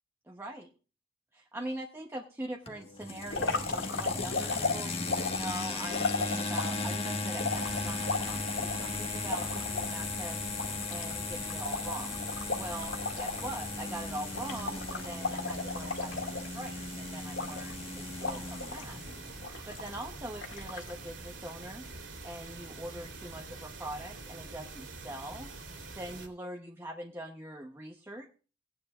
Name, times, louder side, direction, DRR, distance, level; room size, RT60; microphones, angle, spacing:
voice 1, 0.3-0.7 1.3-5.0 5.3-10.4 10.9-12.2 12.6-17.8 18.2-19.0 19.7-21.9 22.2-25.5 25.9-28.3, right 1 dB, 10° right, 0 dB, 0.9 m, -42 dB
sound 1, 2.7-19.4, left 3 dB, 30° left, 1.3 m, -37 dB
sound 2, 3.3-6.9 7.4-9.9 10.3-10.4 10.6-13.5 13.8-14.0 14.3-16.8 17.3-17.9 18.2-18.9 19.4-20.0 20.4-20.9, left 4 dB, 80° left, 2.1 m, -35 dB
sound 3, 7.5-26.3, right 3 dB, 75° right, 2.8 m, -45 dB
18.0 x 9.6 x 2.4 m, 0.35 s
head